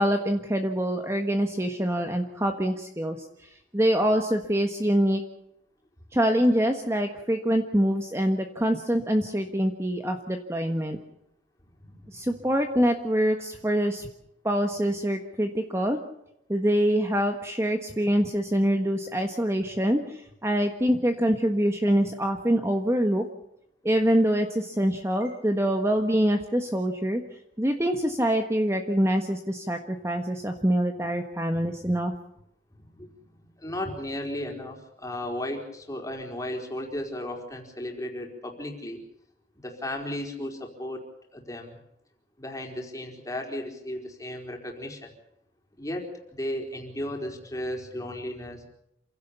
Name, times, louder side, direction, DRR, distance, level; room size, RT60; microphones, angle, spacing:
voice 1, 0.0-5.2 6.1-11.0 12.1-14.1 14.4-16.0 16.5-23.3 23.8-27.2 27.6-32.1, equal, 15° right, 5 dB, 1.4 m, -25 dB
voice 2, 11.8-12.3 32.8-39.0 39.6-41.0 41.3-41.8 42.4-45.1 45.8-48.7, left 1 dB, 20° left, 2 dB, 4.5 m, -35 dB
28.0 x 16.5 x 7.1 m, 0.80 s
head